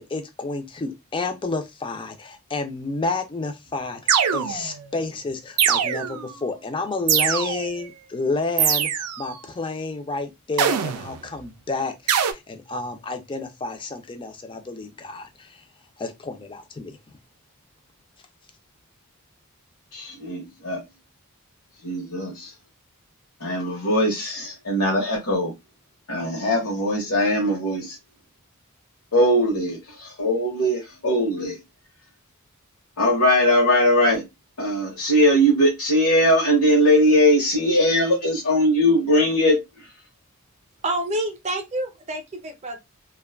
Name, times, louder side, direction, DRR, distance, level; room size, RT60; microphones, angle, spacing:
voice 1, 0.0-15.6 16.0-17.0, left 3 dB, 20° left, 0.4 m, -30 dB
sound 1, 4.1-4.8 5.6-6.3 7.1-7.8 8.6-9.3 10.6-11.2 12.1-12.3, right 8 dB, 85° right, 0.4 m, -22 dB
voice 2, 19.9-20.8 21.8-22.5 23.4-25.5 26.1-28.0 29.1-31.6 33.0-34.2 34.6-39.6, equal, 75° left, 0.9 m, -20 dB
voice 3, 40.8-42.8, right 1 dB, 30° right, 0.5 m, -28 dB
2.5 x 2.2 x 2.3 m
head